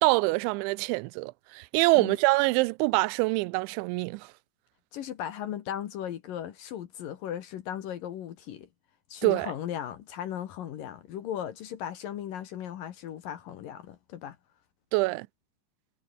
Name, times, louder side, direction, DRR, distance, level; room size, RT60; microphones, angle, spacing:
voice 1, 0.0-4.3 9.2-9.5 14.9-15.3, right 25 dB, 90° right, 2.9 m, -25 dB
voice 2, 4.9-8.7 9.1-14.4, left 10 dB, 65° left, 2.5 m, -37 dB
omnidirectional pair, 5.2 m